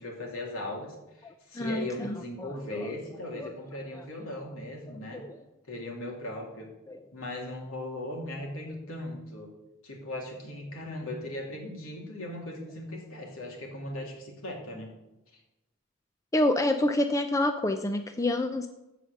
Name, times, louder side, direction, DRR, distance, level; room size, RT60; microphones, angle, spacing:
voice 1, 0.0-5.3 5.7-6.7 7.1-9.5 9.8-14.9, left 1 dB, 75° left, 0 dB, 2.8 m, -38 dB
voice 2, 1.6-2.9 3.3-3.5 5.1-5.4 6.9-7.0 16.3-18.7, left 1 dB, 15° left, 7 dB, 0.4 m, -28 dB
15.0 x 5.0 x 6.6 m, 0.97 s
head